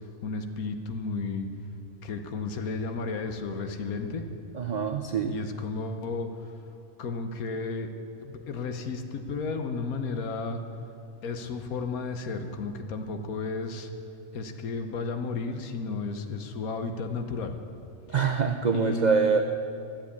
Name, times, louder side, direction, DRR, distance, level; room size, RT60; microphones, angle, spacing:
voice 1, 0.2-1.5 2.0-4.2 5.3-6.5 7.0-7.9 8.2-10.6 11.2-13.9 14.3-17.5 18.7-19.4, left 3 dB, 85° left, 6 dB, 1.4 m, -33 dB
voice 2, 4.5-5.3 18.1-19.4, right 5 dB, 75° right, 5 dB, 0.4 m, -25 dB
13.0 x 7.3 x 8.4 m, 2.6 s
omnidirectional pair, 1.5 m